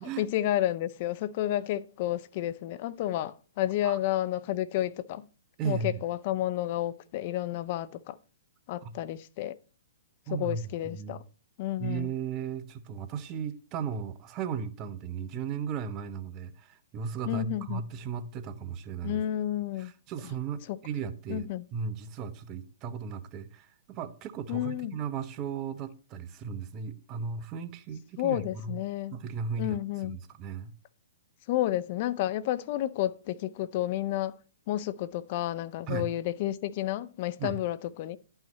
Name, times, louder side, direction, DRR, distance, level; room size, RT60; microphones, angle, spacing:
voice 1, 0.2-5.3 5.6-8.2 8.7-9.6 10.3-11.2 11.6-12.1 17.2-17.8 19.0-19.9 20.7-20.8 21.3-21.6 24.5-25.0 28.2-29.2 29.6-30.2 31.5-34.3 34.7-38.2, left 13 dB, 45° left, 0.5 m, -31 dB
voice 2, 5.6-6.0 8.8-8.9 10.3-11.2 11.8-19.2 19.8-28.8 29.1-30.7 35.9-36.1 37.4-37.6, right 6 dB, 30° right, 0.8 m, -36 dB
10.5 x 5.7 x 4.1 m
figure-of-eight pair, 120°, 0 cm